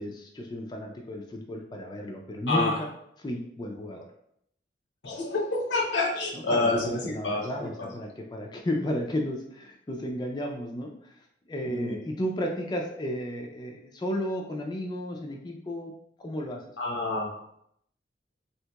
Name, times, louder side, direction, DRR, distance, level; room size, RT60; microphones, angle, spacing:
voice 1, 0.0-2.7 3.2-4.1 6.5-11.1 11.5-15.9 16.2-16.6, left 1 dB, 25° left, 1 dB, 0.3 m, -33 dB
voice 2, 2.5-2.9 5.0-7.9 11.6-12.0 16.8-17.4, left 2 dB, 90° left, 0 dB, 0.7 m, -28 dB
3.4 x 2.8 x 2.2 m, 0.72 s
head